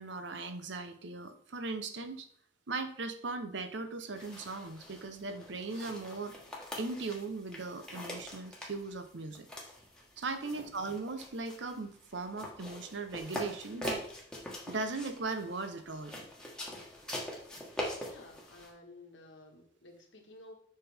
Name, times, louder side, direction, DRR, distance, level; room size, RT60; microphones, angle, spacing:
voice 1, 0.0-2.3 2.7-6.4 6.8-9.5 10.2-14.1 14.7-16.2, right 3 dB, 65° right, 9 dB, 0.7 m, -38 dB
sound 1, 4.1-18.7, left 1 dB, 5° left, 1.4 m, -44 dB
voice 2, 18.1-20.6, left 2 dB, 65° left, 1 dB, 1.5 m, -53 dB
7.4 x 5.4 x 3.5 m, 0.63 s
head